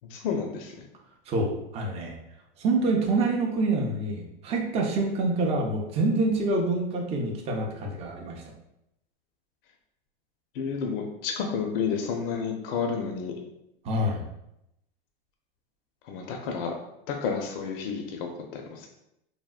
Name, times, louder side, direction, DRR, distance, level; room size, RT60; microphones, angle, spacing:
voice 1, 0.1-0.8 10.6-13.3 16.1-16.7 17.1-18.9, left 6 dB, 65° left, 3 dB, 0.5 m, -31 dB
voice 2, 1.3-2.2 2.6-8.4 13.8-14.2, right 2 dB, 20° right, 1 dB, 0.4 m, -26 dB
3.4 x 2.1 x 2.3 m, 0.83 s
supercardioid pair, 125°, 31 cm